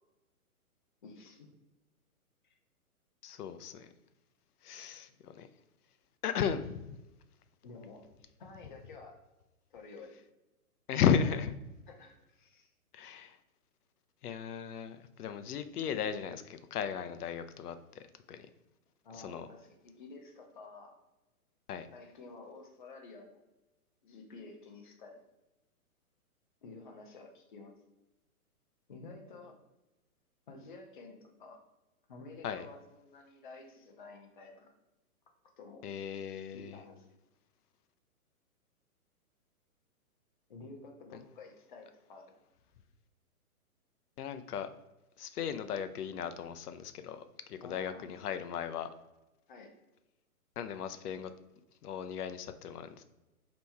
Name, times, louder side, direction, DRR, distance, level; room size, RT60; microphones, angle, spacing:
voice 1, 1.0-1.6 2.4-2.6 7.6-9.2 9.7-10.1 11.2-11.4 11.9-12.7 19.0-20.9 21.9-23.4 24.0-25.2 26.6-27.7 28.9-29.5 30.5-31.6 32.1-34.7 35.6-35.9 36.5-37.1 40.5-42.3 47.6-48.5 49.5-49.7, left 3 dB, 35° left, 2 dB, 0.5 m, -51 dB
voice 2, 3.2-3.9 4.6-5.5 6.2-7.0 10.9-11.5 12.9-13.4 14.2-18.0 18.3-18.5 19.2-19.5 21.7-21.9 32.4-32.7 35.8-36.8 44.2-44.7 45.2-47.2 47.5-48.9 50.6-51.3 51.8-53.0, left 8 dB, 80° left, 10 dB, 0.6 m, -35 dB
4.2 x 2.9 x 3.4 m, 0.99 s
hypercardioid pair, 165°, 45 cm